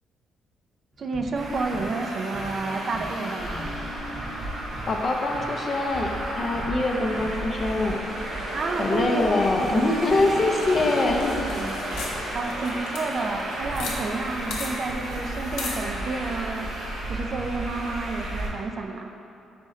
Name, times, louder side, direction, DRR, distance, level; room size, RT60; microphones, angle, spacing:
sound 1, 0.9-12.8 13.7-14.4, right 1 dB, 10° right, 0.7 m, -42 dB
voice 1, 1.0-3.7 8.5-10.0 11.4-11.7 12.3-16.7 17.1-19.1, right 3 dB, 50° right, 4 dB, 0.3 m, -30 dB
Traffic noise roadway noise, 1.4-18.5, right 1 dB, 80° right, 1.3 m, -33 dB
voice 2, 4.9-8.0 8.8-11.5, left 2 dB, 40° left, 2 dB, 0.4 m, -24 dB
sound 2, 10.0-14.0 14.2-14.3 14.5-14.7 15.6-15.8, left 3 dB, 85° left, 0.6 m, -36 dB
4.3 x 3.1 x 3.6 m, 2.9 s
cardioid pair, 90°, 0 cm